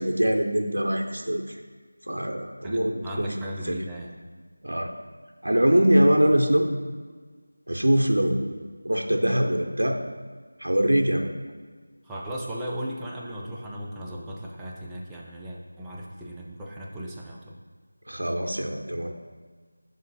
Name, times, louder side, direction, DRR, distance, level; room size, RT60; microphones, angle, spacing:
voice 1, 0.0-1.6 2.1-3.3 3.6-3.8 4.6-4.9 5.4-6.7 7.7-8.6 8.8-10.0 10.6-11.3 18.1-19.1, equal, 65° right, 3 dB, 0.6 m, -23 dB
voice 2, 2.6-4.2 12.0-17.6, equal, 5° right, -4 dB, 0.4 m, -36 dB
6.8 x 3.2 x 5.6 m, 1.5 s
figure-of-eight pair, 170°, 0 cm